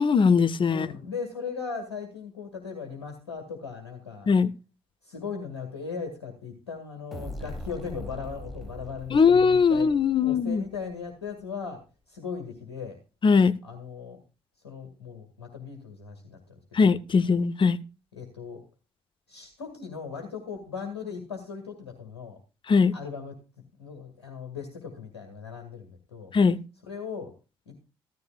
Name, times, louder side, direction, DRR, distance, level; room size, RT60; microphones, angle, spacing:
voice 1, 0.0-0.9 4.3-4.5 9.1-10.6 13.2-13.5 16.7-17.8 22.7-22.9 26.3-26.6, left 5 dB, 40° left, 0.9 m, -20 dB
voice 2, 0.7-4.3 5.0-9.9 10.2-11.8 12.1-13.0 13.6-14.2 14.6-16.4 16.8-17.0 18.1-18.6 19.3-22.4 22.9-23.4 23.8-26.3 26.9-27.3 27.7-27.8, left 5 dB, 80° left, 2.0 m, -38 dB
sound 1, 7.1-10.8, equal, ahead, 5.0 m, -41 dB
15.0 x 13.5 x 2.3 m
figure-of-eight pair, 40°, 14 cm